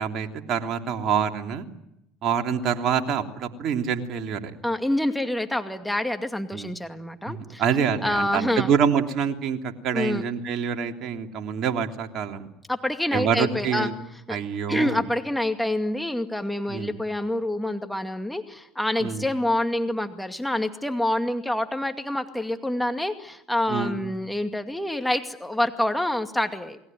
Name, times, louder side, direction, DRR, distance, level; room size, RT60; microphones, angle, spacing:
voice 1, 0.0-1.6 2.2-4.5 6.5-6.7 7.3-12.5 13.1-13.9 14.3-15.0 16.7-17.0 19.0-19.3 23.7-24.0, right 7 dB, 50° right, 4 dB, 3.2 m, -26 dB
voice 2, 4.6-7.6 8.0-8.7 9.9-10.2 12.7-13.9 14.3-14.4 14.7-26.8, left 1 dB, 5° left, 7 dB, 2.3 m, -27 dB
29.0 x 21.0 x 9.2 m, 0.82 s
hypercardioid pair, 70°, 0 cm